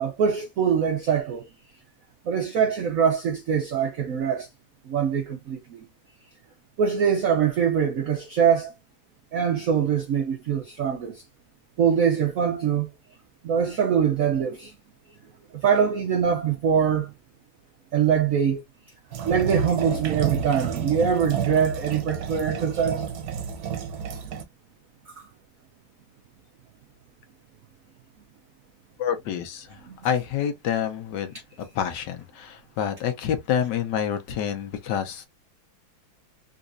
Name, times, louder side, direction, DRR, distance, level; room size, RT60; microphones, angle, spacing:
voice 1, 0.0-1.5 2.3-4.5 4.9-5.8 6.8-8.7 9.3-11.2 11.8-12.9 13.4-14.7 15.6-17.1 17.9-18.6 19.2-23.0 25.2-25.3 29.9-30.0, right 7 dB, 90° right, 0.7 m, -23 dB
sound 1, 19.1-24.4, right 7 dB, 60° right, 1.1 m, -30 dB
voice 2, 29.0-31.3 31.7-35.3, left 9 dB, 70° left, 1.2 m, -28 dB
3.9 x 2.7 x 2.5 m
omnidirectional pair, 2.2 m